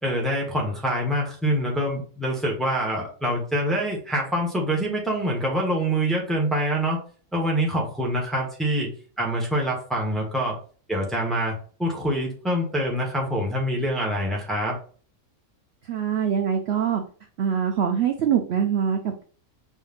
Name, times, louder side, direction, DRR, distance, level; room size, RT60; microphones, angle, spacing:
voice 1, 0.0-7.0 7.3-8.9 9.2-10.6 10.9-14.8, equal, ahead, -2 dB, 1.1 m, -25 dB
voice 2, 15.8-17.0 17.4-19.2, right 8 dB, 60° right, 5 dB, 0.7 m, -24 dB
5.3 x 3.6 x 2.5 m, 0.42 s
omnidirectional pair, 1.5 m